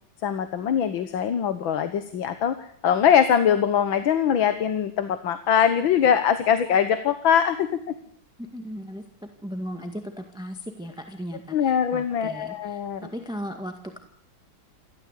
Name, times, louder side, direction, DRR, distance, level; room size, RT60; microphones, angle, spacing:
voice 1, 0.2-7.7 11.5-13.1, left 8 dB, 90° left, 10 dB, 2.0 m, -22 dB
voice 2, 8.4-14.0, equal, ahead, 5 dB, 1.8 m, -37 dB
29.0 x 13.5 x 8.3 m, 0.66 s
omnidirectional pair, 2.1 m